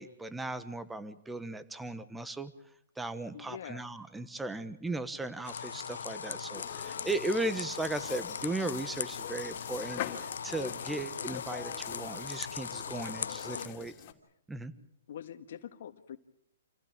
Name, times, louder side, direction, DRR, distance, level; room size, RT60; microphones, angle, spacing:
voice 1, 0.0-2.5 3.0-13.9 14.5-14.7, right 2 dB, 5° right, 13 dB, 1.2 m, -37 dB
voice 2, 3.3-3.9 11.9-12.0 13.5-13.9 14.7-16.2, left 9 dB, 60° left, 7 dB, 1.7 m, -45 dB
sound 1, 5.4-13.7, left 6 dB, 80° left, 0.8 m, -39 dB
sound 2, 6.5-14.1, left 11 dB, 35° left, 2.9 m, -44 dB
28.0 x 16.0 x 8.9 m, 0.74 s
hypercardioid pair, 145°, 0 cm